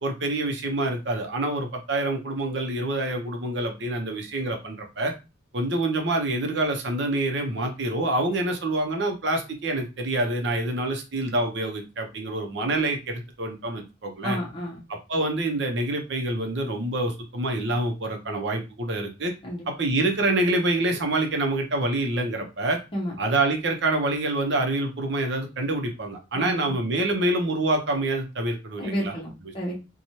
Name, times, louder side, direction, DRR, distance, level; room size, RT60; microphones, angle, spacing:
voice 1, 0.0-5.1 5.5-14.4 15.1-19.3 19.7-22.8 23.2-29.1, right 2 dB, 65° right, 3 dB, 0.7 m, -26 dB
voice 2, 14.2-14.8 19.4-19.6 22.9-23.1 26.3-26.8 28.8-29.8, equal, 30° left, -2 dB, 0.7 m, -31 dB
3.0 x 2.3 x 2.7 m, 0.28 s
head